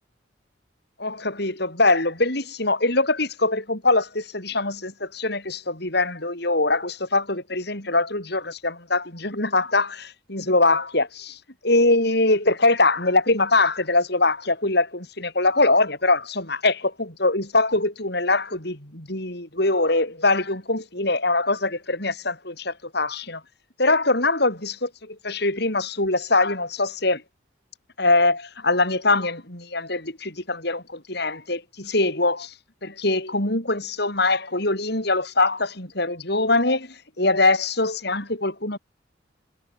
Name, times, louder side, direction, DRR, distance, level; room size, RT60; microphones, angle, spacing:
voice 1, 1.0-11.4 11.6-23.4 23.8-27.2 28.0-32.5 32.8-38.8, left 2 dB, 55° left, 7.6 m, -23 dB
head